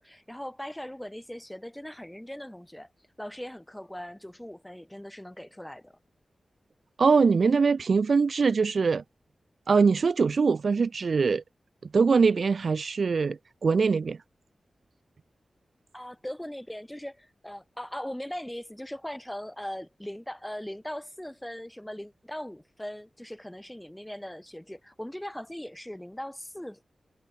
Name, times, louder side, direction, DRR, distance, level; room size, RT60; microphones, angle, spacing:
voice 1, 0.0-2.9 3.2-6.0 15.9-26.8, left 1 dB, 5° left, 3.1 m, -39 dB
voice 2, 7.0-9.0 9.7-11.4 11.9-14.2, right 5 dB, 55° right, 0.4 m, -23 dB
wide cardioid pair, 160°, 0 cm